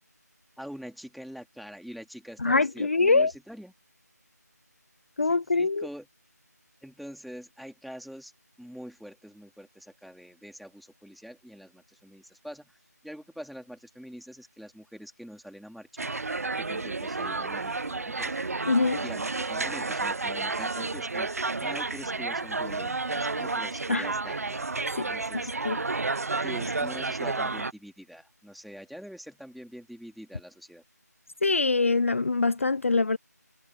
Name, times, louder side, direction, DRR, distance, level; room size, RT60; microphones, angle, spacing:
voice 1, 0.6-3.7 5.2-6.1 6.8-8.3 8.6-12.8 13.0-16.1 16.6-18.4 19.0-21.3 21.6-24.6 25.1-25.5 26.4-30.8, equal, ahead, 2.8 m, -44 dB
voice 2, 2.4-3.3 5.2-5.9 18.7-19.0 23.9-24.1 25.0-25.1 25.6-25.8 31.4-33.2, left 3 dB, 45° left, 0.5 m, -23 dB
sound 1, 16.0-27.7, right 3 dB, 55° right, 0.6 m, -31 dB
figure-of-eight pair, 170°, 9 cm